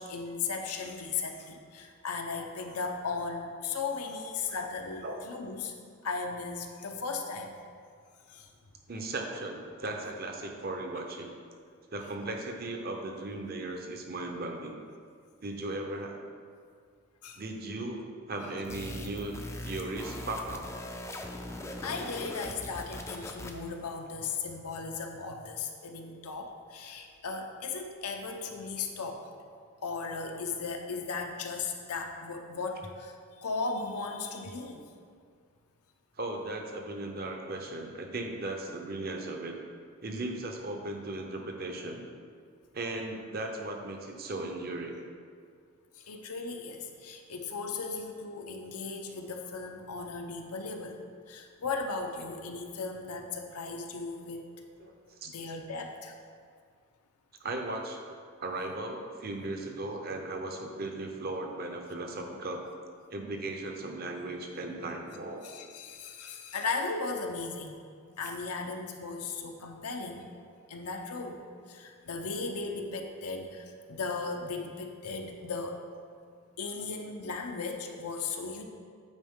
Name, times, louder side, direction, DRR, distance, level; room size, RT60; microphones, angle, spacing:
voice 1, 0.0-5.7 6.0-7.6 8.3-8.5 17.2-17.4 18.4-18.7 21.8-29.2 29.8-34.9 45.9-51.0 51.3-54.5 55.2-56.2 65.4-67.8 68.2-70.3 70.7-71.4 71.7-75.8 76.6-78.6, left 4 dB, 90° left, 3 dB, 0.7 m, -36 dB
voice 2, 8.9-11.3 11.9-14.8 15.4-16.3 17.4-19.3 19.6-20.7 36.2-39.6 40.0-42.0 42.7-45.0 54.8-54.9 55.2-55.3 57.4-58.0 58.4-62.6 63.1-65.4, right 2 dB, 40° right, 3 dB, 0.7 m, -37 dB
sound 1, 18.6-23.7, left 1 dB, 15° left, 0.4 m, -41 dB
9.0 x 4.5 x 3.7 m, 2.1 s
head